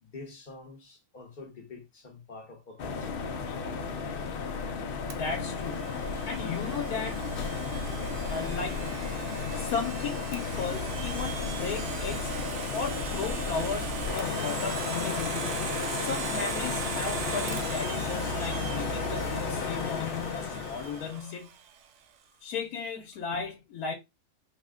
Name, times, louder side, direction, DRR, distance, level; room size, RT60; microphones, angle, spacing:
voice 1, 0.0-3.2, left 3 dB, 40° left, 0.9 m, -47 dB
sound 1, 2.8-21.2, left 4 dB, 70° left, 0.5 m, -33 dB
voice 2, 5.1-7.2 8.2-8.9 9.5-12.3 12.7-15.6 15.9-21.5 22.4-23.9, left 5 dB, 90° left, 1.2 m, -35 dB
Domestic sounds home sounds, 5.1-21.9, right 7 dB, 65° right, 0.8 m, -40 dB
4.2 x 2.1 x 3.6 m
omnidirectional pair, 1.5 m